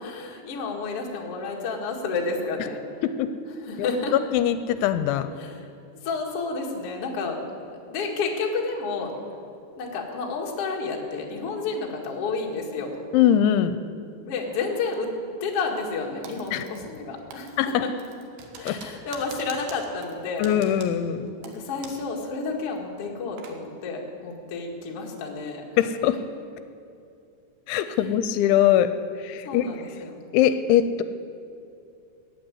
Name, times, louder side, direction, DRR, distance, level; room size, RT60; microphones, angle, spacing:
voice 1, 0.0-3.0 3.6-4.1 5.4-5.7 6.0-7.4 7.8-9.1 9.8-13.0 14.3-15.1 15.4-17.9 18.6-20.5 21.4-25.6 27.9-28.0 29.4-30.2, left 4 dB, 55° left, 0 dB, 1.7 m, -30 dB
voice 2, 4.3-5.3 13.1-13.8 16.5-16.6 17.6-17.8 18.7-18.8 20.4-21.3 25.8-26.2 27.7-29.7 30.3-31.0, left 10 dB, 85° left, 11 dB, 2.9 m, -22 dB
Typing, 16.2-17.0 17.3-22.1 22.4-22.5 23.0-23.6, right 5 dB, 65° right, 2.9 m, -44 dB
15.0 x 8.3 x 9.7 m, 2.6 s
omnidirectional pair, 5.4 m